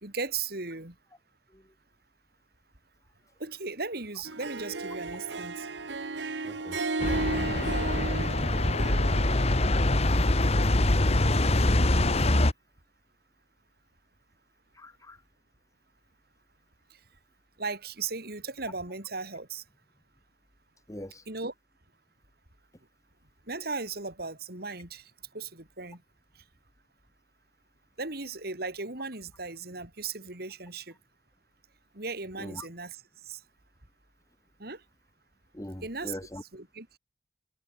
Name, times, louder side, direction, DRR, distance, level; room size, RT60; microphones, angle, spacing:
voice 1, 0.0-0.9 3.4-5.7 17.6-19.6 21.3-21.5 23.5-26.0 28.0-30.9 31.9-33.0 33.3-33.4 34.6-34.8 35.8-36.1 36.5-37.0, right 4 dB, 60° right, 4.3 m, -37 dB
Harp, 4.2-9.6, right 3 dB, 85° right, 1.5 m, -34 dB
voice 2, 6.4-6.8 14.7-15.2 20.9-21.2 32.3-32.7 35.5-36.4, left 1 dB, 20° left, 2.1 m, -42 dB
sound 1, 7.0-12.5, left 1 dB, 35° left, 1.5 m, -24 dB
head